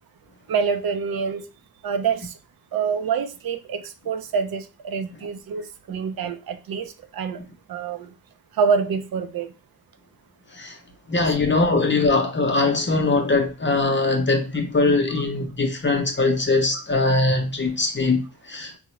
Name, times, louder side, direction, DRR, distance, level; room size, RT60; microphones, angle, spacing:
voice 1, 0.5-1.4 1.8-2.3 2.7-5.6 5.9-7.4 7.7-8.1 8.6-9.5 16.7-16.8, right 6 dB, 85° right, 0.5 m, -26 dB
voice 2, 11.1-18.2 18.5-18.7, left 3 dB, 35° left, 0.5 m, -21 dB
3.6 x 2.1 x 2.9 m
wide cardioid pair, 105°, 35 cm